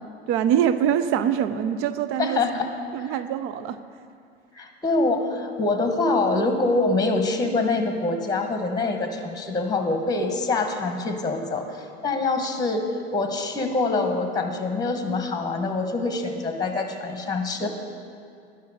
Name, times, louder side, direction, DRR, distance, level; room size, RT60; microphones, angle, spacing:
voice 1, 0.3-2.4 2.9-3.8, right 9 dB, 45° right, 11 dB, 0.5 m, -24 dB
voice 2, 2.2-2.7 3.0-3.2 4.5-12.9 13.1-17.7, left 3 dB, 10° left, 5 dB, 1.1 m, -25 dB
10.5 x 5.7 x 6.4 m, 2.3 s
hypercardioid pair, 90°, 32 cm